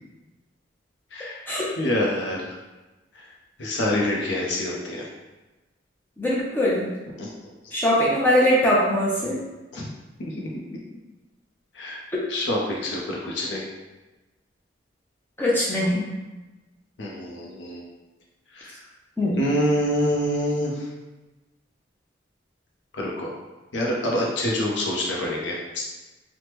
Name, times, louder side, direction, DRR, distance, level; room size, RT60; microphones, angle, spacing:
voice 1, 1.1-1.4 1.8-2.5 3.1-3.3 3.6-5.1 7.2-7.3 7.6-7.7 9.7-9.9 10.2-10.5 11.7-12.0 12.3-13.7 17.0-17.8 18.5-18.8 19.4-20.9 22.9-23.3 23.7-25.8, left 1 dB, 70° left, -2 dB, 0.5 m, -26 dB
voice 2, 6.2-6.9 7.7-9.4 15.4-16.0 19.2-19.4, equal, 10° left, -6 dB, 0.5 m, -21 dB
3.3 x 2.1 x 2.9 m, 1.1 s
head